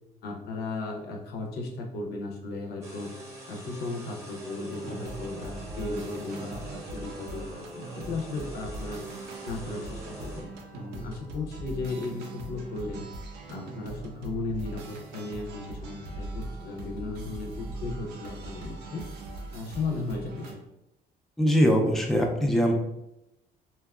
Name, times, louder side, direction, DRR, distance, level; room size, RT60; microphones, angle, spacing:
voice 1, 0.2-3.1 3.5-9.0 9.4-13.0 13.5-19.0 19.5-20.6, left 3 dB, 70° left, 0 dB, 0.6 m, -35 dB
sound 1, 2.8-10.4, right 1 dB, 15° right, 0.7 m, -44 dB
sound 2, 4.7-20.6, right 2 dB, 80° right, 0.5 m, -41 dB
voice 2, 21.4-22.7, equal, ahead, 1 dB, 0.3 m, -22 dB
2.7 x 2.2 x 2.3 m, 0.87 s
cardioid pair, 110°, 17 cm